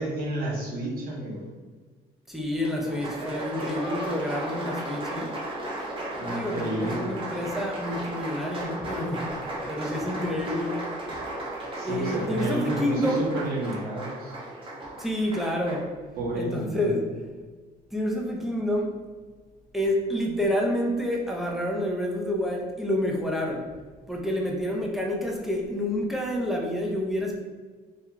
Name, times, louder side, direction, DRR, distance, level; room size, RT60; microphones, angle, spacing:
voice 1, 0.0-1.5 6.2-7.1 11.8-14.3 16.2-17.0, right 1 dB, 65° right, -2 dB, 0.9 m, -31 dB
voice 2, 2.3-5.3 6.3-9.3 9.7-10.8 11.8-13.3 15.0-15.9 16.3-17.0 17.9-18.9 19.7-23.7 24.1-27.4, left 1 dB, ahead, -1 dB, 0.4 m, -28 dB
Applause, 2.6-15.9, right 1 dB, 30° right, 0.7 m, -35 dB
2.3 x 2.2 x 2.9 m, 1.4 s
cardioid pair, 110°, 17 cm